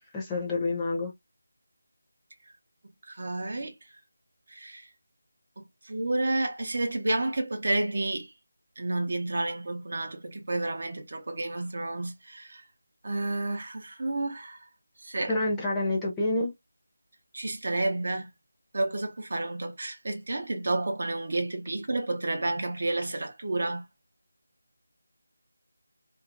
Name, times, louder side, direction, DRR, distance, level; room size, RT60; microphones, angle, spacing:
voice 1, 0.1-1.1 15.3-16.5, left 2 dB, 10° left, 0.7 m, -28 dB
voice 2, 3.1-3.7 4.5-4.9 5.6-8.3 8.8-12.6 13.0-14.6 15.0-15.3 17.3-18.3 18.7-23.8, right 2 dB, 45° right, 0.7 m, -30 dB
2.8 x 2.4 x 2.5 m
figure-of-eight pair, 160°, 0 cm